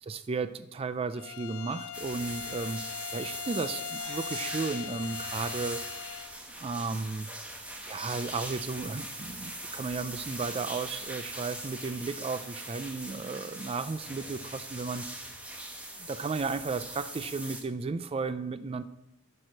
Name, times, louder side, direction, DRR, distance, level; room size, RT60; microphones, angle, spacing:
voice 1, 0.0-2.8 3.1-5.8 6.6-7.3 7.8-15.1 16.0-18.8, right 4 dB, 25° right, 13 dB, 0.3 m, -34 dB
Bowed string instrument, 1.1-6.4, left 11 dB, 90° left, 0.5 m, -41 dB
sound 1, 1.9-17.6, right 1 dB, 5° right, 1.0 m, -41 dB
sound 2, 4.0-7.5, right 2 dB, 50° right, 2.3 m, -53 dB
10.5 x 4.8 x 6.1 m, 0.86 s
head